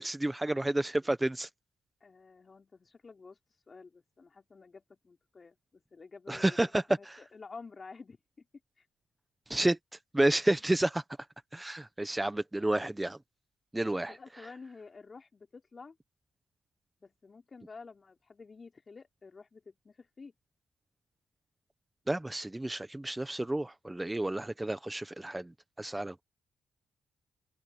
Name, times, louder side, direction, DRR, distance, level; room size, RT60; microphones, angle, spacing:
voice 1, 0.0-1.5 6.3-7.2 9.5-9.8 10.1-11.0 11.5-13.2 13.7-14.2 22.1-25.5 25.8-26.2, right 1 dB, 15° right, 1.2 m, -30 dB
voice 2, 2.0-3.4 3.7-8.5 8.8-8.9 14.1-16.0 17.0-20.3, left 4 dB, 40° left, 4.8 m, -51 dB
open air
cardioid pair, 65°, 0 cm